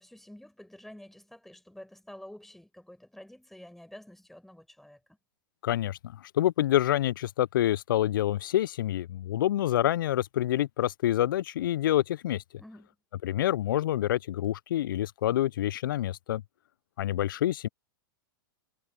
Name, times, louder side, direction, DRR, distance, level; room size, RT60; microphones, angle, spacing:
voice 1, 0.0-5.0 12.6-13.0, left 1 dB, ahead, 6.1 m, -49 dB
voice 2, 5.6-12.4 13.2-16.4 17.0-17.7, left 13 dB, 65° left, 0.8 m, -27 dB
hypercardioid pair, 100°, 12 cm